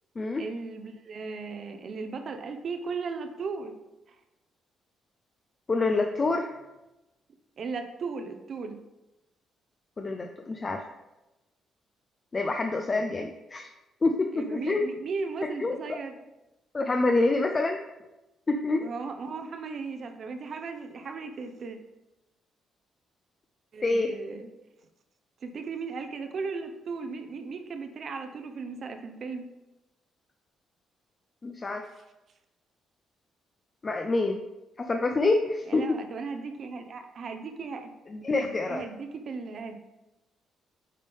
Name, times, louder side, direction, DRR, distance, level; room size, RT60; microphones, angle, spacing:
voice 1, 0.4-3.7 7.6-8.8 14.3-16.1 18.8-21.8 23.7-24.5 25.4-29.4 35.7-37.9 38.3-39.8, right 4 dB, 55° right, 7 dB, 0.8 m, -36 dB
voice 2, 5.7-6.5 10.0-10.8 12.3-13.7 14.0-14.8 15.6-15.8 16.7-17.8 18.5-18.9 23.8-24.1 31.4-31.9 33.8-34.4 34.8-36.0 38.1-38.8, left 3 dB, 30° left, 4 dB, 0.5 m, -26 dB
9.2 x 3.7 x 3.5 m, 0.99 s
cardioid pair, 90°, 0 cm